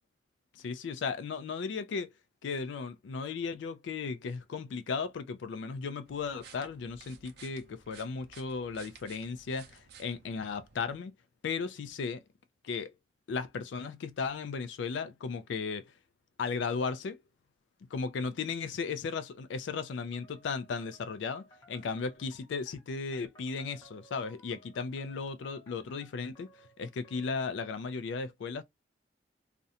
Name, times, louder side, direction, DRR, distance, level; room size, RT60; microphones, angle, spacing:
voice 1, 0.5-2.1 2.4-11.1 11.4-12.2 12.6-12.9 13.3-15.9 16.4-17.2 17.9-26.5 26.8-28.6, left 5 dB, 85° left, 0.4 m, -36 dB
sound 1, 6.1-11.0, right 6 dB, 60° right, 0.5 m, -56 dB
sound 2, 20.1-27.5, equal, 20° left, 0.6 m, -60 dB
2.4 x 2.1 x 2.7 m
head